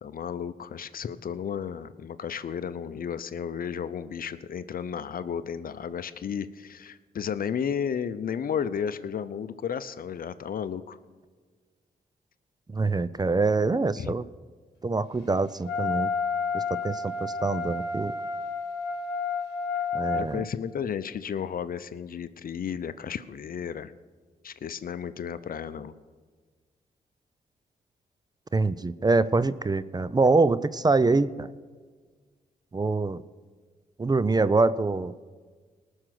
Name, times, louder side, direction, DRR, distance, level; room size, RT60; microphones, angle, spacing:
voice 1, 0.0-11.0 14.0-14.2 20.1-23.9 24.4-25.9, left 7 dB, 55° left, 13 dB, 0.7 m, -33 dB
voice 2, 12.7-14.2 14.8-16.1 16.5-18.1 19.9-20.5 28.5-31.5 32.7-33.2 34.0-35.1, right 3 dB, 25° right, 17 dB, 0.5 m, -24 dB
Wind instrument woodwind instrument, 15.6-20.3, left 5 dB, 85° left, 1.0 m, -30 dB
19.0 x 6.4 x 6.0 m, 1.5 s
supercardioid pair, 50°, 17 cm